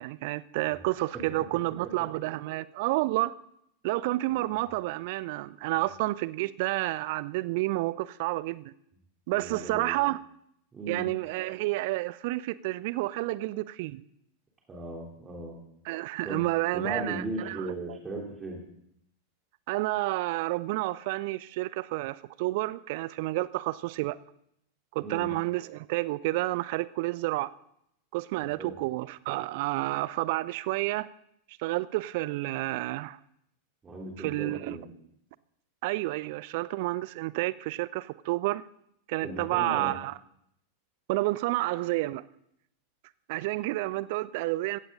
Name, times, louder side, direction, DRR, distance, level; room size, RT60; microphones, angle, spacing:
voice 1, 0.0-3.3 3.8-8.7 9.3-10.2 10.9-14.0 15.9-17.7 19.7-24.2 24.9-27.5 28.1-31.1 31.6-33.2 34.2-34.8 35.8-38.6 39.1-40.2 41.1-42.2 43.3-44.8, right 19 dB, 50° right, 0.5 m, -30 dB
voice 2, 9.3-10.0 10.7-11.0 14.7-15.6 16.2-16.4 16.7-18.6 25.0-25.3 28.6-28.7 33.8-34.9 39.2-39.9, right 2 dB, 20° right, 3.3 m, -37 dB
16.0 x 16.0 x 3.8 m
figure-of-eight pair, 90°, 0 cm